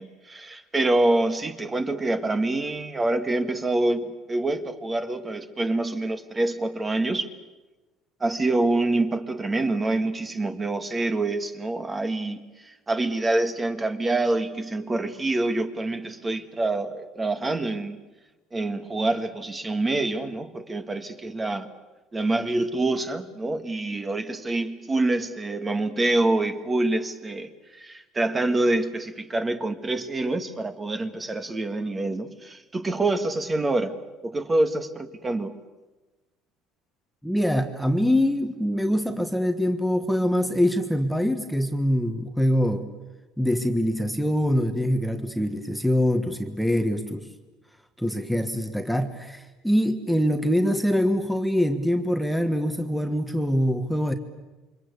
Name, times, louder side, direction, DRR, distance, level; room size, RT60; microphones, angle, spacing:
voice 1, 0.0-7.3 8.2-18.0 18.5-21.7 22.1-34.0 34.2-35.6, right 2 dB, 15° right, 1.6 m, -26 dB
voice 2, 37.2-42.9 43.4-47.3 48.0-54.1, equal, ahead, 1.4 m, -24 dB
28.5 x 24.5 x 8.3 m
cardioid pair, 145°, 0 cm